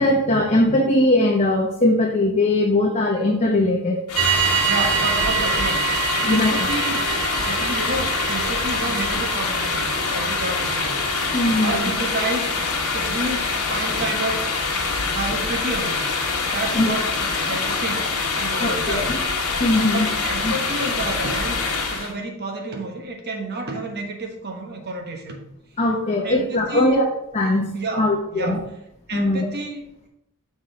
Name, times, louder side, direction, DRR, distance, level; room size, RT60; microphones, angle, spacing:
voice 1, 0.0-4.0 6.2-6.5 10.0-10.1 11.3-11.8 16.7-16.9 18.6-19.2 19.6-20.1 20.4-20.6 25.8-27.1 27.3-27.7 28.0-28.6 29.1-29.5, left 1 dB, 30° left, 0 dB, 0.7 m, -20 dB
sound 1, 4.1-22.1, left 4 dB, 85° left, 1.3 m, -25 dB
sound 2, 4.1-11.8, right 9 dB, 75° right, 0.8 m, -27 dB
voice 2, 4.6-5.8 6.2-7.1 7.4-9.8 10.1-11.0 11.5-12.5 12.9-14.5 15.1-16.1 16.4-18.1 18.4-19.2 19.9-21.6 21.9-25.4 26.2-27.0 27.7-28.6 29.1-30.1, right 2 dB, 50° right, 2 dB, 1.2 m, -30 dB
6.0 x 4.3 x 4.8 m, 0.81 s
head